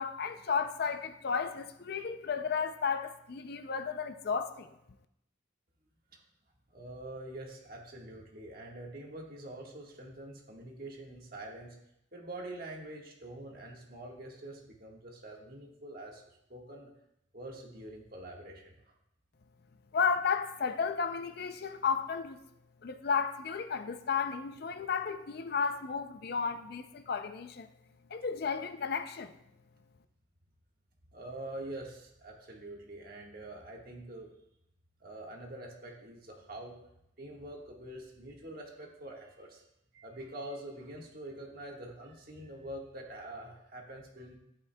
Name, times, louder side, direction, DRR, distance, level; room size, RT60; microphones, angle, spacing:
voice 1, 0.0-4.7 19.9-22.4 22.8-27.7 28.1-29.3, left 6 dB, 50° left, 0.4 m, -33 dB
voice 2, 6.7-11.7 12.1-16.2 16.5-16.9 17.3-18.9 21.6-21.7 31.1-34.3 35.0-36.8 37.2-39.6 39.9-44.4, right 1 dB, 45° right, 1.6 m, -45 dB
11.0 x 8.9 x 2.3 m
head